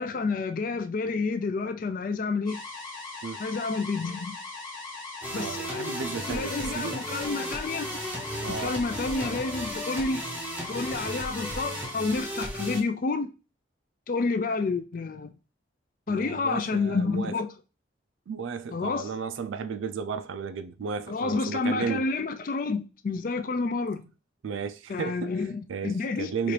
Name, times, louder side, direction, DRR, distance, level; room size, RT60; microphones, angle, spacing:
voice 1, 0.0-2.6 3.4-4.4 5.3-5.9 6.3-7.9 8.5-10.2 10.7-13.3 14.1-15.3 16.1-17.5 18.7-19.1 21.1-24.0 24.9-26.5, left 4 dB, 45° left, 0.3 m, -29 dB
sound 1, 2.5-11.9, left 3 dB, 25° left, 1.2 m, -40 dB
sound 2, 5.2-12.8, equal, 10° right, 0.6 m, -35 dB
voice 2, 5.3-7.0 8.3-8.8 16.1-17.3 18.3-22.1 24.4-25.4 25.7-26.5, right 6 dB, 85° right, 0.4 m, -34 dB
4.2 x 2.5 x 3.2 m
head